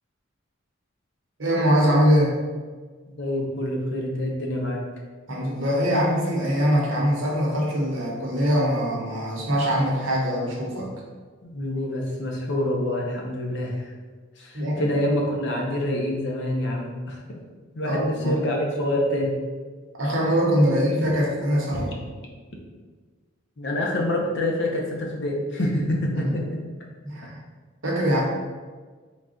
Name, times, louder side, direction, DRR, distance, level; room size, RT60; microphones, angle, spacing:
voice 1, 1.4-2.3 5.3-10.9 14.5-14.9 17.8-18.3 20.0-22.0 26.1-26.3 27.0-27.4 27.8-28.2, equal, 65° right, -3 dB, 1.0 m, -22 dB
voice 2, 3.1-4.8 11.4-13.9 14.4-17.4 17.7-19.3 21.7-21.9 23.6-26.6 27.2-27.3, left 1 dB, 60° left, -1 dB, 0.7 m, -26 dB
3.9 x 2.3 x 3.8 m, 1.4 s
head